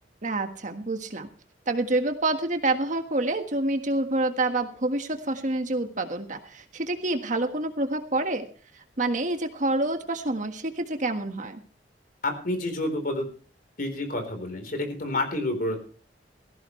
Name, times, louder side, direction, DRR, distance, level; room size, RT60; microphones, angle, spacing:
voice 1, 0.2-1.3 1.7-8.4 9.0-11.6, right 2 dB, 45° right, 6 dB, 1.5 m, -27 dB
voice 2, 12.2-13.3 13.8-15.8, left 1 dB, 55° left, 6 dB, 4.0 m, -29 dB
18.0 x 15.0 x 3.2 m, 0.41 s
head